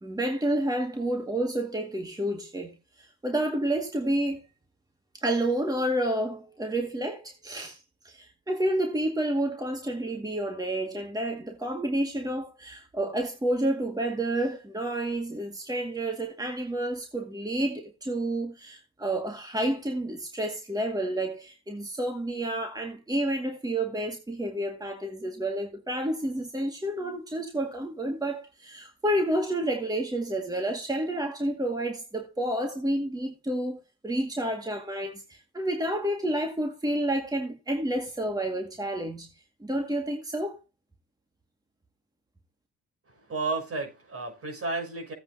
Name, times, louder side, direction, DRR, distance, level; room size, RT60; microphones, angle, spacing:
voice 1, 0.0-4.4 5.1-7.8 8.0-39.3 39.6-40.6, right 1 dB, 15° right, 2.1 m, -30 dB
voice 2, 43.3-45.1, right 3 dB, 50° right, 6.6 m, -32 dB
16.0 x 8.7 x 2.8 m
cardioid pair, 90°, 30 cm